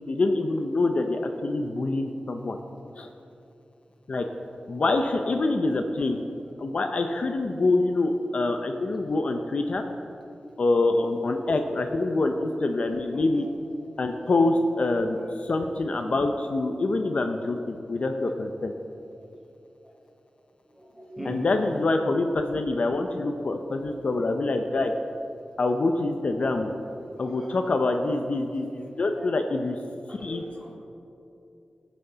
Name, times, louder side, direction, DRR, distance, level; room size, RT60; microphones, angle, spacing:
voice 1, 0.1-2.6 3.0-3.1 4.1-4.2 4.7-6.2 6.6-9.8 10.6-13.5 14.0-18.7 21.2-24.9 25.6-26.7 27.2-29.8 30.2-30.4, left 2 dB, 55° left, 5 dB, 0.5 m, -25 dB
voice 2, 13.0-13.5 15.1-15.3 19.1-19.2 20.7-21.4 24.8-24.9 27.2-27.5 29.1-29.3 30.1-30.8, right 1 dB, 10° right, -4 dB, 2.4 m, -43 dB
16.5 x 6.4 x 3.9 m, 2.8 s
wide cardioid pair, 125°, 3 cm